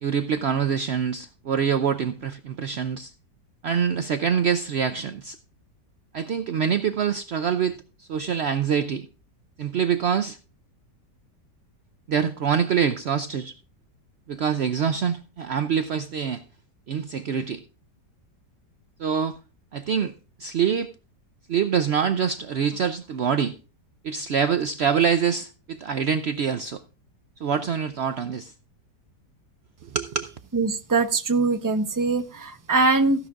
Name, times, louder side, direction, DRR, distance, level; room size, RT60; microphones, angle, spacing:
voice 1, 0.0-3.1 3.6-5.4 6.1-9.1 9.6-10.4 12.1-13.5 14.3-16.4 16.9-17.6 19.0-19.4 19.7-20.1 20.4-20.9 21.5-23.6 24.0-26.8 27.4-28.5 29.8-30.3, right 7 dB, 75° right, 0.5 m, -25 dB
voice 2, 30.5-33.3, right 3 dB, 15° right, 0.6 m, -22 dB
15.0 x 11.0 x 2.4 m
omnidirectional pair, 1.9 m